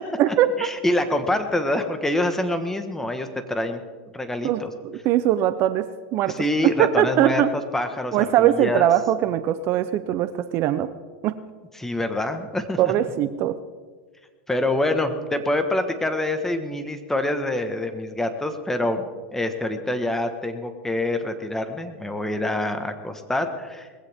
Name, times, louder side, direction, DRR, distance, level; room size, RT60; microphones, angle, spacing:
voice 1, 0.3-3.8 4.1-4.7 6.3-8.9 11.7-12.9 14.5-23.9, left 1 dB, 5° left, 7 dB, 1.4 m, -26 dB
voice 2, 4.4-6.3 6.8-7.5 8.1-10.9 11.2-11.4 12.8-13.6, right 12 dB, 45° right, 12 dB, 0.7 m, -21 dB
20.5 x 15.5 x 3.6 m, 1.5 s
supercardioid pair, 125°, 6 cm